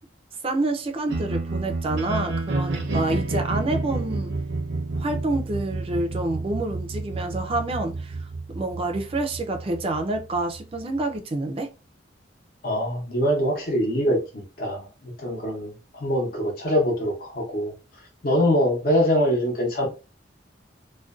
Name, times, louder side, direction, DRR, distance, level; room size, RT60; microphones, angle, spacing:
voice 1, 0.4-4.3 5.0-8.2 8.5-11.7, right 2 dB, 30° right, 0.4 m, -28 dB
sound 1, 1.1-11.2, right 2 dB, 80° right, 0.6 m, -30 dB
voice 2, 12.6-17.7 18.2-19.9, equal, 55° left, 0.7 m, -24 dB
2.4 x 2.2 x 2.3 m
head